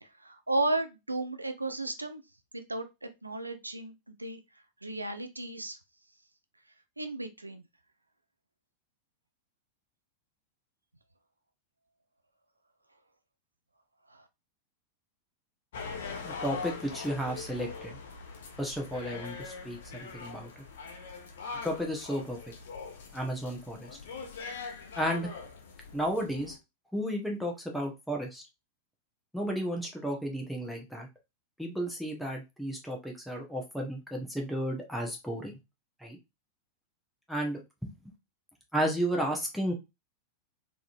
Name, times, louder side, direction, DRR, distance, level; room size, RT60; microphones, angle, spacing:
voice 1, 0.0-2.2 2.5-4.4 4.8-5.8 7.0-7.6 14.1-14.3, right 2 dB, 85° right, 8 dB, 0.5 m, -34 dB
sound 1, 15.7-26.6, left 5 dB, 60° left, 0.8 m, -42 dB
voice 2, 16.2-18.0 18.6-20.6 21.6-22.4 23.1-23.9 25.0-25.3 25.9-26.5 26.9-28.4 29.3-31.1 31.6-35.5 36.0-36.2 37.3-37.6 38.7-39.7, equal, ahead, 0 dB, 1.0 m, -33 dB
3.8 x 3.0 x 2.5 m, 0.23 s
figure-of-eight pair, 90°, 0 cm